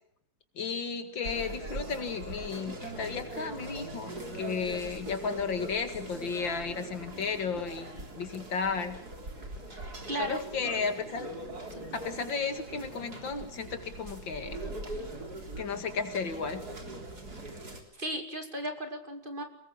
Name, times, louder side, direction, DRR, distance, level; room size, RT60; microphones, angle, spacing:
voice 1, 0.6-9.0 10.2-11.3 11.9-14.6 15.6-16.6, left 5 dB, 85° left, 8 dB, 2.8 m, -34 dB
sound 1, 1.2-17.8, right 2 dB, 55° right, 4.1 m, -42 dB
voice 2, 9.7-10.4 11.7-11.8 17.3-17.4 17.9-19.4, right 1 dB, 25° right, 5 dB, 2.8 m, -36 dB
23.5 x 20.5 x 7.3 m, 0.73 s
omnidirectional pair, 2.0 m